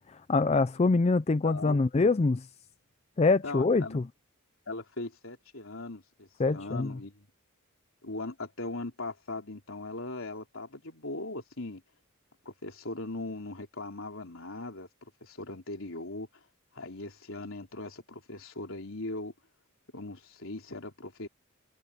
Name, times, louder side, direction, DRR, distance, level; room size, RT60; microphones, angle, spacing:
voice 1, 0.1-2.5 3.2-4.0 6.4-6.9, left 3 dB, 30° left, 0.4 m, -25 dB
voice 2, 1.4-1.8 3.4-4.0 4.7-7.3 8.0-11.8 12.5-14.9 15.2-16.3 16.7-19.3 19.9-21.3, left 2 dB, 65° left, 3.6 m, -39 dB
head